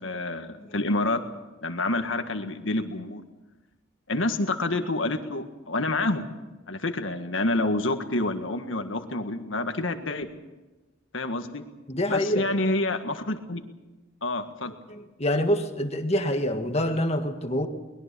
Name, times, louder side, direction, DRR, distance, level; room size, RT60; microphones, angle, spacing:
voice 1, 0.0-1.2 1.6-3.2 4.1-6.3 6.7-10.3 11.1-11.6 12.1-13.6 14.2-14.7, left 2 dB, 65° left, 7 dB, 1.7 m, -28 dB
voice 2, 11.9-12.5 14.9-17.7, left 1 dB, 30° left, 6 dB, 1.8 m, -26 dB
23.0 x 21.0 x 6.9 m, 1.2 s
head